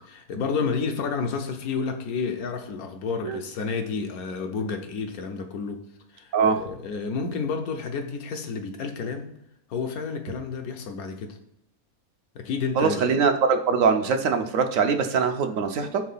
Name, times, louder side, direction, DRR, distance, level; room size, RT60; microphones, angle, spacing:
voice 1, 0.0-5.9 6.1-9.3 9.7-11.4 12.3-13.0, left 5 dB, 80° left, 5 dB, 1.3 m, -30 dB
voice 2, 12.8-16.0, right 5 dB, 70° right, 6 dB, 1.0 m, -22 dB
4.7 x 3.7 x 5.5 m, 0.79 s
omnidirectional pair, 1.5 m